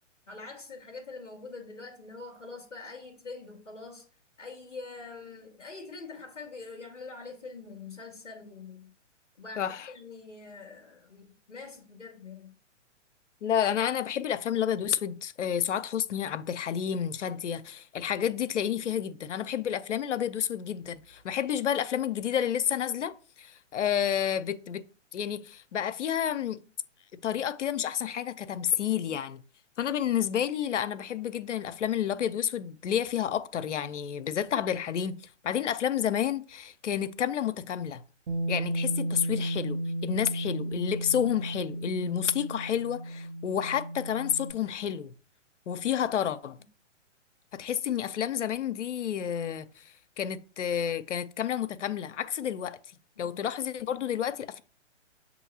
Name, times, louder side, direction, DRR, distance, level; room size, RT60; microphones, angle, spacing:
voice 1, 0.3-4.0 4.4-8.9 9.4-12.6 53.2-53.4, left 4 dB, 5° left, 0.3 m, -44 dB
voice 2, 9.6-9.9 13.4-24.8 25.1-26.6 27.1-29.4 29.8-35.2 35.4-38.0 38.5-45.1 45.7-46.6 47.5-49.8 50.2-52.8 53.2-54.6, left 9 dB, 75° left, 0.5 m, -30 dB
Bass guitar, 38.3-44.5, right 1 dB, 40° right, 0.8 m, -33 dB
6.9 x 2.7 x 2.7 m
figure-of-eight pair, 130°, 37 cm